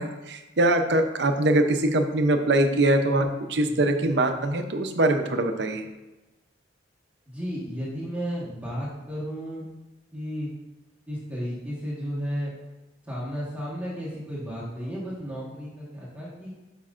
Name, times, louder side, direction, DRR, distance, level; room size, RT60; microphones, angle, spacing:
voice 1, 0.0-5.8, right 1 dB, 65° right, 6 dB, 0.7 m, -23 dB
voice 2, 7.3-9.7 10.1-10.5 11.1-12.5 13.0-16.5, equal, 10° right, -7 dB, 1.4 m, -33 dB
10.0 x 5.3 x 2.5 m, 1.1 s
head